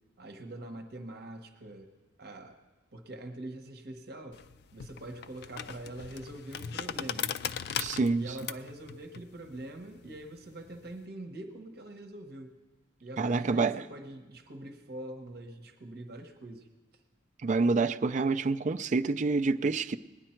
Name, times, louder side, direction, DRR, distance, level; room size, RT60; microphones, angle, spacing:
voice 1, 0.2-1.9 2.2-2.6 2.9-4.4 4.7-7.3 8.1-12.6 13.0-16.7, right 1 dB, 60° right, 1.1 m, -44 dB
sound 1, 4.3-11.0, left 8 dB, 60° left, 0.4 m, -39 dB
voice 2, 7.8-8.2 13.2-13.8 17.4-20.0, right 3 dB, 40° right, 0.4 m, -27 dB
19.5 x 9.9 x 4.4 m
head